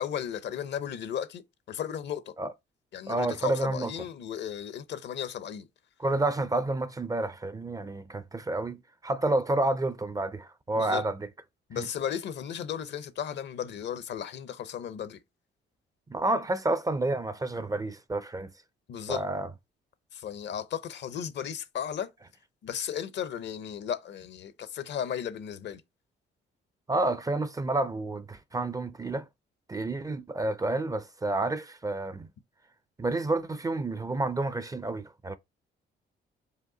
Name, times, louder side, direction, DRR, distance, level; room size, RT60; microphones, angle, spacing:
voice 1, 0.0-1.4 1.7-2.3 2.9-5.7 10.7-11.0 11.7-15.2 18.9-19.2 20.1-22.1 22.6-25.8, left 9 dB, 65° left, 0.6 m, -35 dB
voice 2, 3.1-3.9 6.0-11.3 11.7-11.9 16.1-18.5 19.1-19.5 26.9-29.3 29.7-32.3 33.0-35.4, right 2 dB, 20° right, 0.4 m, -29 dB
5.0 x 2.3 x 3.8 m
cardioid pair, 90°, 20 cm